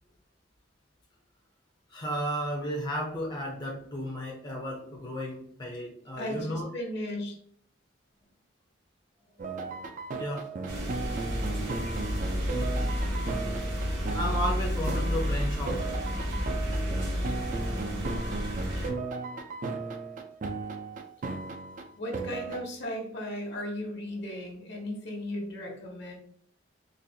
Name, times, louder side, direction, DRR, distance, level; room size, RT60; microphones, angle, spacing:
voice 1, 1.9-6.7 9.3-11.8 13.9-15.9, equal, 25° left, -2 dB, 0.6 m, -35 dB
voice 2, 6.2-7.4 22.0-26.1, left 1 dB, 65° left, 0 dB, 1.1 m, -36 dB
sound 1, 9.4-22.6, right 3 dB, 45° right, 0.4 m, -36 dB
sound 2, 10.7-18.9, equal, 75° right, 1.1 m, -31 dB
3.9 x 2.5 x 2.7 m, 0.62 s
head